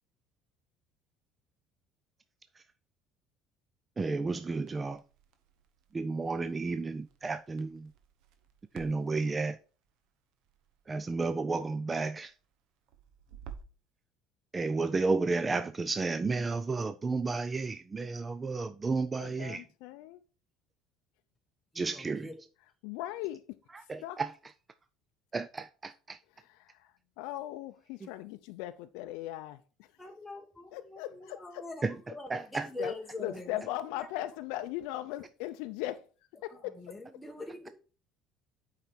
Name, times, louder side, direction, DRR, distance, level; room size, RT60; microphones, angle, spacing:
voice 1, 4.0-5.0 5.9-7.9 8.7-9.6 10.9-12.3 14.5-19.6 21.7-22.3 23.7-24.3 25.3-26.2 31.8-32.7, right 3 dB, 20° right, 0.4 m, -32 dB
Crackle, 4.6-13.9, right 7 dB, 75° right, 1.0 m, -55 dB
voice 2, 19.2-20.2 22.6-24.2 26.4-30.1 30.7-31.7 32.8-36.1 36.4-37.0, left 14 dB, 85° left, 0.4 m, -39 dB
voice 3, 21.7-22.3 30.0-33.5 36.8-37.7, left 2 dB, 5° left, 1.0 m, -43 dB
8.1 x 4.9 x 4.2 m
cardioid pair, 130°, 0 cm